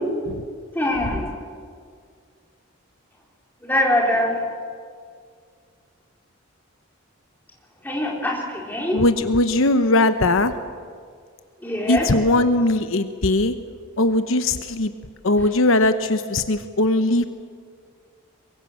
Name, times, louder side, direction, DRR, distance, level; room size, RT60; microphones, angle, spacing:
voice 1, 0.7-1.3 3.6-4.3 7.8-9.0 11.6-12.1, left 1 dB, 10° left, -2 dB, 4.2 m, -23 dB
voice 2, 8.9-10.5 11.9-13.5 14.0-14.9 15.2-17.2, left 2 dB, 70° left, 9 dB, 1.0 m, -19 dB
24.0 x 21.5 x 7.5 m, 2.1 s
head